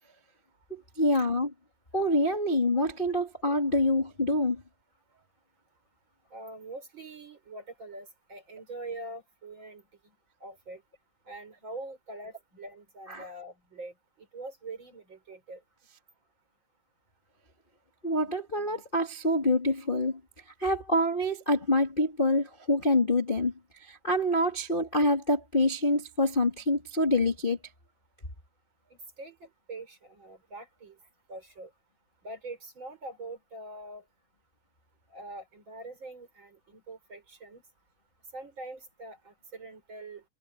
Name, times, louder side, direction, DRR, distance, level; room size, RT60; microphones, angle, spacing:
voice 1, 0.7-1.5 1.9-4.6 13.1-13.2 18.0-20.2 20.6-23.5 23.8-27.6, left 1 dB, 30° left, 0.8 m, -26 dB
voice 2, 6.3-10.1 10.4-10.8 11.3-15.6 28.9-31.0 31.3-31.7 32.2-34.0 35.1-37.6 38.3-40.2, right 2 dB, 25° right, 5.6 m, -44 dB
omnidirectional pair, 5.2 m